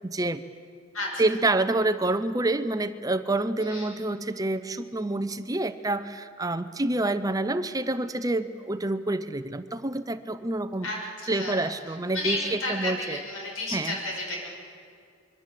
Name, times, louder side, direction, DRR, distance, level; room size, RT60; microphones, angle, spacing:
voice 1, 0.0-0.4 1.2-10.9 11.3-13.2 13.7-13.9, right 2 dB, 15° right, 12 dB, 0.7 m, -27 dB
voice 2, 3.6-3.9 10.8-14.6, left 1 dB, 90° left, 0 dB, 6.5 m, -33 dB
26.0 x 23.0 x 7.6 m, 2.2 s
head